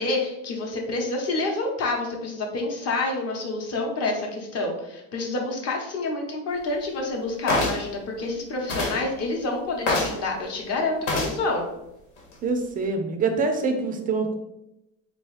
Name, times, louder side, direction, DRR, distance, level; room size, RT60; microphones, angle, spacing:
voice 1, 0.0-11.6, left 2 dB, 40° left, 1 dB, 0.9 m, -28 dB
sound 1, 7.5-7.9 8.7-9.0 9.9-10.2 11.1-11.4 12.2-12.3, left 2 dB, 80° left, 1.3 m, -25 dB
voice 2, 12.4-14.3, right 4 dB, 25° right, 6 dB, 0.3 m, -25 dB
4.0 x 3.0 x 3.1 m, 0.89 s
cardioid pair, 145°, 38 cm